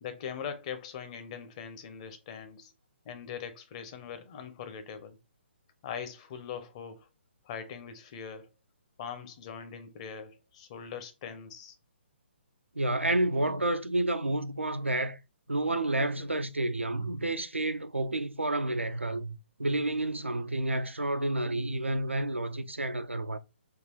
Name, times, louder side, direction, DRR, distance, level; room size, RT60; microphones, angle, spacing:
voice 1, 0.0-2.7 3.0-5.2 5.8-7.1 7.4-8.5 9.0-11.8, left 7 dB, 30° left, 0.6 m, -41 dB
voice 2, 12.7-15.2 15.5-23.4, right 1 dB, 90° right, 0.4 m, -30 dB
3.7 x 2.3 x 3.0 m
figure-of-eight pair, 135°, 6 cm